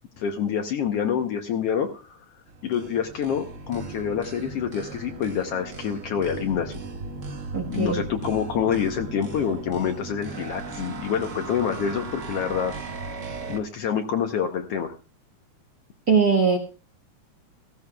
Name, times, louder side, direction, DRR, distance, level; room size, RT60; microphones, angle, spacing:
voice 1, 0.2-2.2 2.6-6.8 7.7-12.8 13.5-14.9, left 8 dB, 65° left, 5 dB, 1.7 m, -27 dB
sound 1, 2.5-13.6, right 4 dB, 60° right, 0.7 m, -37 dB
voice 2, 7.5-8.0 16.1-16.6, right 5 dB, 40° right, 2 dB, 1.5 m, -20 dB
17.5 x 15.5 x 2.3 m, 0.32 s
omnidirectional pair, 3.4 m